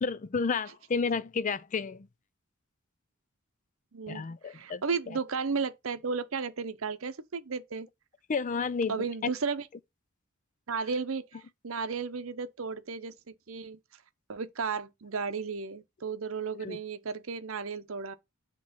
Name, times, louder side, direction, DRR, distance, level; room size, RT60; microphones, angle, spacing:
voice 1, 0.0-2.1 4.1-5.2 8.3-9.3 16.6-16.8, left 5 dB, 40° left, 0.5 m, -31 dB
voice 2, 3.9-7.9 8.9-9.7 10.7-11.3 11.6-13.1 13.5-13.8 14.3-18.2, right 5 dB, 75° right, 0.8 m, -34 dB
7.9 x 3.1 x 5.1 m
head